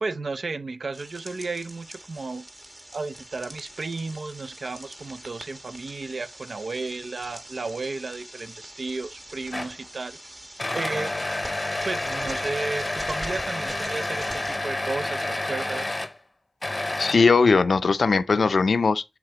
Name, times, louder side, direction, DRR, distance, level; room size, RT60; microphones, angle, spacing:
voice 1, 0.0-2.5 2.9-10.2 10.7-11.2 11.8-16.1, right 3 dB, 70° right, 0.6 m, -33 dB
sound 1, 0.9-14.6, right 1 dB, 30° right, 1.4 m, -44 dB
sound 2, 9.5-9.9 10.6-16.2 16.6-17.5, left 2 dB, 30° left, 0.7 m, -29 dB
voice 2, 17.0-19.0, left 4 dB, 80° left, 0.5 m, -19 dB
9.7 x 3.4 x 2.9 m
cardioid pair, 50°, 0 cm